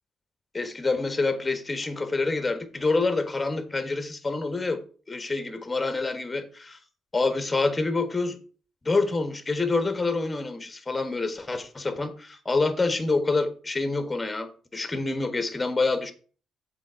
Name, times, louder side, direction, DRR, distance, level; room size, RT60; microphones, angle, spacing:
voice 1, 0.5-4.8 5.1-6.8 7.1-8.4 8.8-16.1, left 3 dB, 20° left, 1.5 m, -27 dB
7.3 x 4.7 x 7.0 m
cardioid pair, 90°, 0 cm